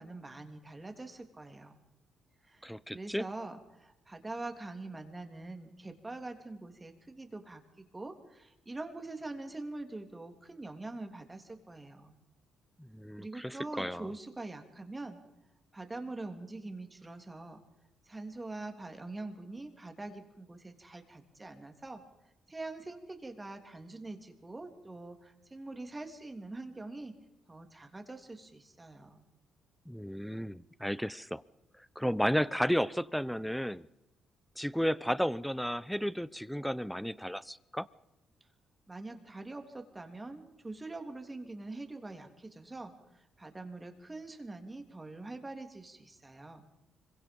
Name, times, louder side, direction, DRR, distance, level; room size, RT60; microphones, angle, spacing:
voice 1, 0.0-1.7 2.5-2.7 2.9-12.2 13.2-15.2 15.7-17.6 18.1-22.0 22.5-27.1 27.5-29.3 38.9-42.9 43.4-46.6, right 2 dB, 20° right, 6 dB, 3.2 m, -44 dB
voice 2, 2.6-3.3 12.8-14.1 29.9-31.4 32.0-33.9 34.6-37.9, equal, ahead, 19 dB, 0.8 m, -33 dB
25.5 x 23.0 x 5.4 m, 0.92 s
cardioid pair, 90°, 0 cm